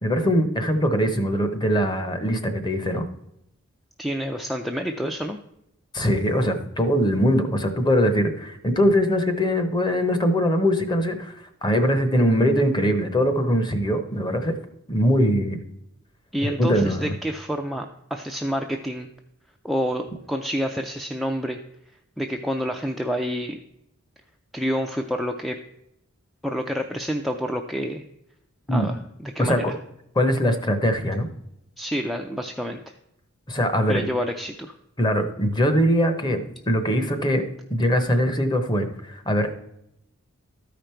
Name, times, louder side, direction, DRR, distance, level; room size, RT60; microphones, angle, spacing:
voice 1, 0.0-3.0 5.9-11.3 11.6-14.5 14.9-15.6 16.4-17.1 28.7-28.9 29.4-29.6 30.2-31.3 33.5-34.0 35.0-37.4 37.7-39.5, equal, 20° left, 8 dB, 0.9 m, -22 dB
voice 2, 4.0-5.4 16.3-19.1 19.6-21.6 22.2-23.6 24.5-25.6 26.4-28.0 28.7-29.8 31.8-32.9 33.9-34.8, equal, ahead, 4 dB, 0.4 m, -28 dB
13.0 x 5.1 x 4.4 m, 0.79 s
head